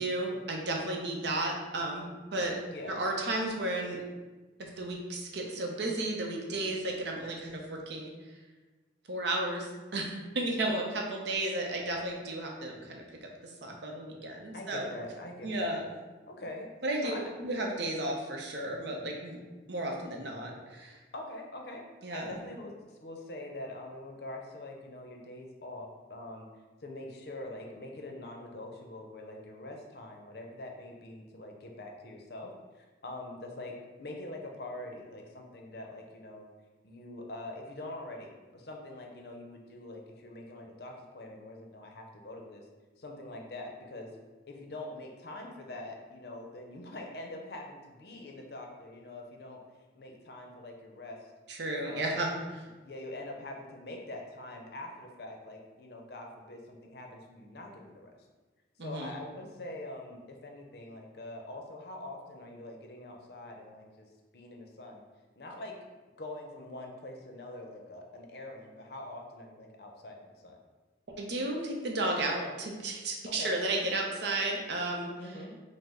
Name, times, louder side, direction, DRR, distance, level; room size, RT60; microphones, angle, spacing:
voice 1, 0.0-2.1 2.3-2.6 2.9-4.0 4.6-8.1 9.1-13.3 13.6-14.9 15.4-15.8 16.8-19.4 19.7-21.0 22.0-22.4 51.5-52.3 58.8-59.1 71.2-75.1, right 2 dB, 65° right, 0 dB, 0.7 m, -33 dB
voice 2, 2.7-3.0 10.6-10.8 14.5-15.8 16.3-16.7 17.0-17.4 21.1-21.8 22.1-26.5 26.8-36.5 36.8-42.6 43.0-44.1 44.5-49.6 49.9-51.3 51.8-52.2 52.8-58.1 58.8-65.0 65.4-65.8 66.2-70.6 73.3-73.5 75.2-75.5, left 1 dB, 55° left, 1 dB, 0.6 m, -44 dB
5.1 x 2.1 x 3.6 m, 1.2 s
head